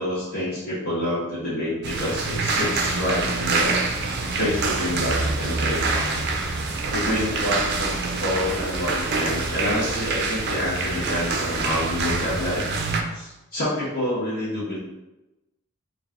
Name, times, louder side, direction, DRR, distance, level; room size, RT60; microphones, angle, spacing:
voice 1, 0.0-3.8 4.3-5.8 6.9-12.6 13.1-14.8, left 1 dB, 45° left, -10 dB, 1.2 m, -27 dB
sound 1, 1.8-13.0, right 3 dB, 50° right, 0.5 m, -26 dB
4.1 x 2.5 x 3.6 m, 0.99 s
head